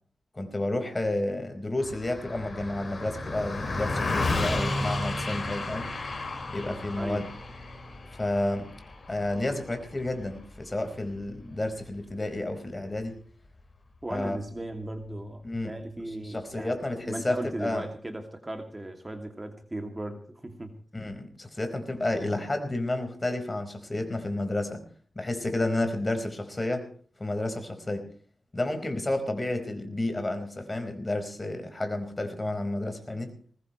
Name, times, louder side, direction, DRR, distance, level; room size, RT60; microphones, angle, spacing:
voice 1, 0.3-5.9 6.5-7.3 8.1-8.7 9.1-13.2 14.1-14.4 15.4-15.8 16.2-17.9 20.9-24.8 25.1-26.9 27.2-28.1 28.5-33.3, left 2 dB, 25° left, 7 dB, 4.7 m, -31 dB
Car passing by, 1.8-11.4, left 2 dB, 45° left, 4.9 m, -33 dB
voice 2, 7.0-7.3 14.0-16.8 17.1-20.8, right 1 dB, 20° right, 5 dB, 2.5 m, -37 dB
21.5 x 19.5 x 3.2 m, 0.43 s
wide cardioid pair, 90°, 0 cm